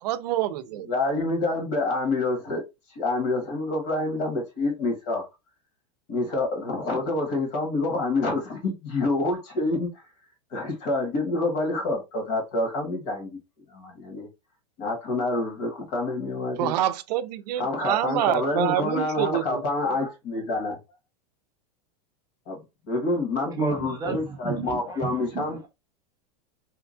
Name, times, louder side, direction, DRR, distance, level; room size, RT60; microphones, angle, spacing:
voice 1, 0.0-0.9 16.6-19.6, right 12 dB, 85° right, 0.4 m, -26 dB
voice 2, 0.9-2.6 2.9-5.3 6.1-9.9 10.5-13.4 13.7-14.3 14.8-16.7 17.6-20.8 22.5-25.6, left 2 dB, 50° left, 1.4 m, -27 dB
voice 3, 23.6-25.7, right 6 dB, 20° right, 0.6 m, -32 dB
2.8 x 2.3 x 2.5 m
supercardioid pair, 155°, 20 cm